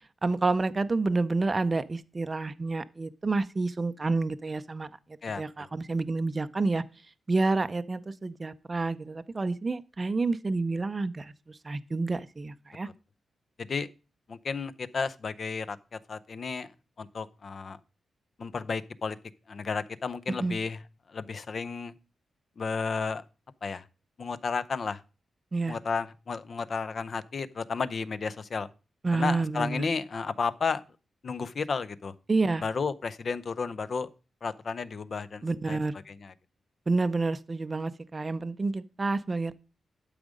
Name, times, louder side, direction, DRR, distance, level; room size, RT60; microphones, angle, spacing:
voice 1, 0.2-4.9 5.4-6.8 7.3-12.9 20.4-20.6 25.5-25.8 29.0-29.9 32.3-32.6 35.4-35.9 36.9-39.5, right 3 dB, 25° right, 0.5 m, -29 dB
voice 2, 5.2-5.7 13.6-13.9 14.3-15.8 16.1-16.7 17.0-17.8 18.4-19.2 19.5-20.8 21.1-21.9 22.6-23.2 23.6-23.8 24.2-25.0 25.7-28.7 29.1-30.8 31.2-32.1 32.6-34.1 34.4-35.8 36.1-36.3, left 5 dB, 40° left, 0.6 m, -32 dB
12.0 x 5.0 x 5.1 m
wide cardioid pair, 165°, 0 cm